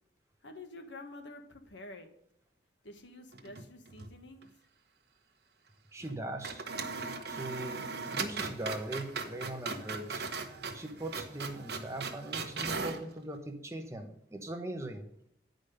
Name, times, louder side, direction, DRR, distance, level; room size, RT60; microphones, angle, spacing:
voice 1, 0.4-2.1 2.8-4.5, left 2 dB, 80° left, 6 dB, 1.4 m, -48 dB
sound 1, 3.3-4.1 4.4-4.5 6.0-6.2 6.4-13.0, right 4 dB, 60° right, 1.1 m, -38 dB
voice 2, 5.9-6.6 7.3-10.2 10.7-15.1, right 1 dB, 15° right, 4 dB, 1.1 m, -40 dB
9.6 x 5.2 x 6.7 m, 0.74 s
head